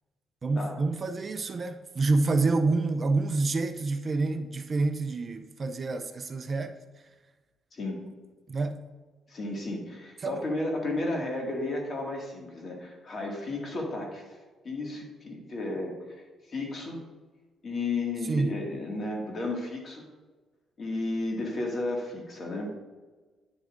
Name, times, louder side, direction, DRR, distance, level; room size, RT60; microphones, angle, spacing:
voice 1, 0.4-6.7 8.5-8.8 10.2-10.4 18.3-18.6, right 3 dB, 40° right, 0.5 m, -27 dB
voice 2, 7.7-8.0 9.3-14.3 14.6-17.0 17.6-20.1 20.8-22.7, left 2 dB, 45° left, 1.9 m, -33 dB
9.9 x 7.1 x 2.5 m
cardioid pair, 90°, 0 cm